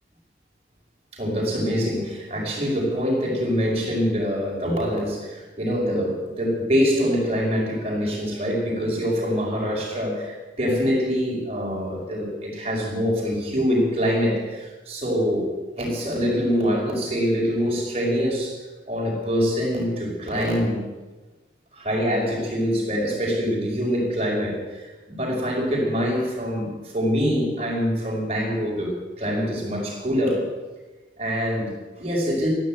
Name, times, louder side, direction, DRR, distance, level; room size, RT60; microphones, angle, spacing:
voice 1, 1.1-15.5 15.8-18.6 18.9-20.8 21.7-30.5 31.2-32.5, equal, 35° right, -1 dB, 5.4 m, -24 dB
13.5 x 11.5 x 9.1 m, 1.2 s
head